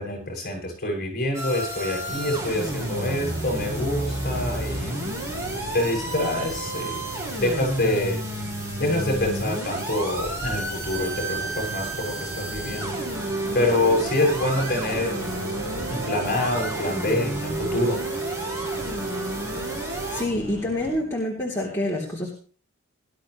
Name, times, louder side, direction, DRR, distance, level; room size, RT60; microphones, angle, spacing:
voice 1, 0.0-5.0 5.7-7.0 7.4-8.2 8.8-12.9 13.5-15.2 15.9-18.0, left 1 dB, 45° left, 1 dB, 7.5 m, -26 dB
sound 1, 1.3-20.2, right 1 dB, 15° right, 4.7 m, -31 dB
sound 2, 2.1-21.0, right 1 dB, 40° right, 4.0 m, -38 dB
voice 2, 20.1-22.3, left 1 dB, 10° left, -5 dB, 3.4 m, -27 dB
20.0 x 12.5 x 3.2 m, 0.40 s
head